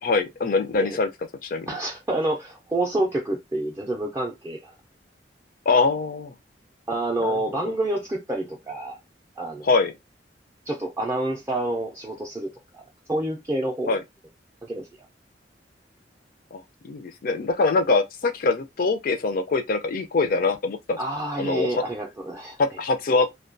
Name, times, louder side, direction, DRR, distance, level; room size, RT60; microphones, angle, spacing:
voice 1, 0.0-1.1 1.4-1.7 5.7-6.3 7.2-7.7 9.6-9.9 13.9-14.0 16.5-21.0 21.4-21.8 22.6-23.3, left 3 dB, 50° left, 0.4 m, -23 dB
voice 2, 1.7-4.7 6.9-9.0 9.4-9.7 10.7-12.8 13.1-14.0 14.6-14.9 21.0-22.6, right 1 dB, 15° right, 0.4 m, -28 dB
2.2 x 2.2 x 2.5 m
head